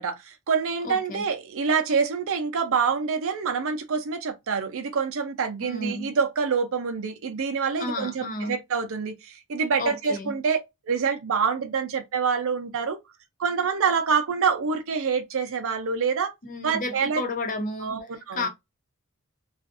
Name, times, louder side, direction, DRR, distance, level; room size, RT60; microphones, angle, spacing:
voice 1, 0.0-10.6 10.9-13.0 13.4-16.3 16.6-17.2 17.8-18.5, right 5 dB, 65° right, 0.6 m, -26 dB
voice 2, 0.8-1.2 5.6-6.1 7.8-8.6 9.8-10.3 16.4-18.5, left 2 dB, 40° left, 0.6 m, -32 dB
2.5 x 2.4 x 2.4 m
head